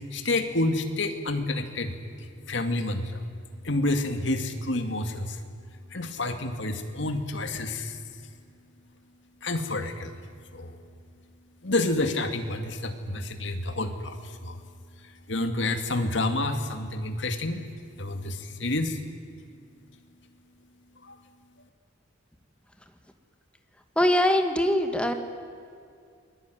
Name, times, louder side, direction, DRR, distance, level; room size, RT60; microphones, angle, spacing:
voice 1, 0.1-3.2 3.6-5.4 5.9-8.0 9.4-10.1 10.5-10.8 11.6-14.6 15.0-17.6 18.0-19.0 21.0-21.2, left 2 dB, 65° left, 7 dB, 2.3 m, -29 dB
voice 2, 23.9-25.1, left 1 dB, 5° left, 6 dB, 1.8 m, -22 dB
28.5 x 21.5 x 9.3 m, 2.3 s
head